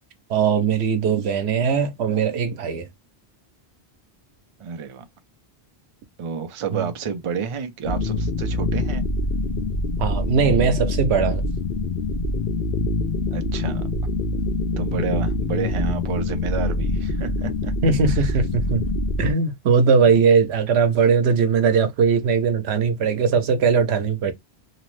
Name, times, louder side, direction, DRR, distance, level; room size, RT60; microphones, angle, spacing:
voice 1, 0.3-2.9 6.7-6.9 10.0-11.4 17.8-18.8 19.2-24.3, right 6 dB, 90° right, 0.9 m, -20 dB
voice 2, 4.6-5.1 6.2-9.0 13.3-13.9 14.8-17.7 18.1-18.4 20.0-20.2, right 6 dB, 45° right, 0.4 m, -30 dB
sound 1, 7.8-19.3, left 2 dB, 65° left, 0.8 m, -25 dB
2.9 x 2.0 x 3.0 m
omnidirectional pair, 1.1 m